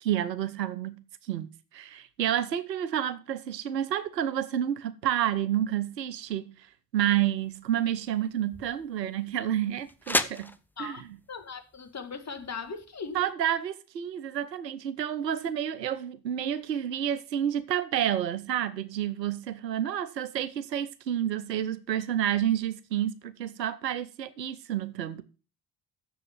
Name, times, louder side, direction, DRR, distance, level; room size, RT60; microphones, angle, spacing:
voice 1, 0.0-6.5 6.9-11.1 13.1-25.2, right 10 dB, 85° right, 0.7 m, -30 dB
sound 1, 7.4-13.3, left 1 dB, 5° left, 0.7 m, -37 dB
voice 2, 11.3-13.2, left 5 dB, 35° left, 2.0 m, -38 dB
7.6 x 7.1 x 7.2 m
figure-of-eight pair, 40°, 48 cm